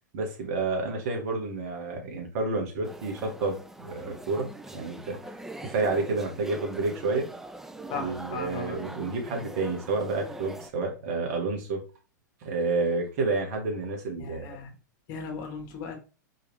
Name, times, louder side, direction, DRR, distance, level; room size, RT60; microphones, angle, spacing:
voice 1, 0.1-5.2 5.6-7.3 7.9-11.8 12.4-14.6, right 3 dB, 50° right, 2 dB, 1.5 m, -30 dB
sound 1, 2.8-10.7, right 1 dB, 5° right, 0.3 m, -42 dB
voice 2, 7.9-8.8 14.2-14.7 15.1-16.0, left 5 dB, 40° left, 3 dB, 1.4 m, -37 dB
4.6 x 3.2 x 3.2 m, 0.34 s
figure-of-eight pair, 100°, 10 cm